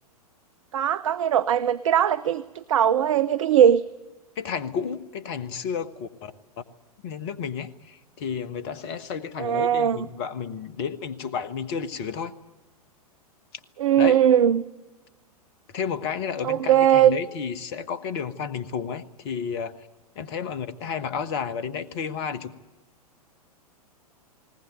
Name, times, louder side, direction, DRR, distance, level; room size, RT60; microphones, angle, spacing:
voice 1, 0.7-3.8 9.4-10.1 13.8-14.6 16.4-17.2, right 10 dB, 55° right, 14 dB, 0.8 m, -20 dB
voice 2, 4.4-6.3 7.0-12.3 14.0-14.2 15.7-19.7 20.1-22.6, left 6 dB, 40° left, 13 dB, 1.4 m, -31 dB
20.0 x 19.0 x 9.3 m, 1.1 s
figure-of-eight pair, 100°, 20 cm